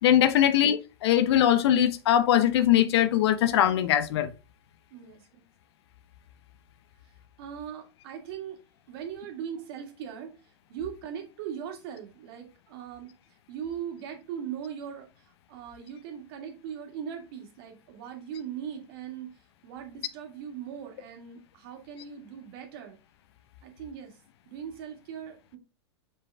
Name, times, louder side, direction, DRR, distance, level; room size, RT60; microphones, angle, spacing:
voice 1, 0.0-4.3, left 11 dB, 65° left, 0.8 m, -21 dB
voice 2, 4.9-5.4 7.4-8.6 8.9-10.3 10.7-13.1 13.5-19.4 19.6-23.0 23.6-24.2 24.5-25.6, right 8 dB, 60° right, 2.1 m, -40 dB
5.5 x 5.1 x 3.5 m
hypercardioid pair, 105°, 15 cm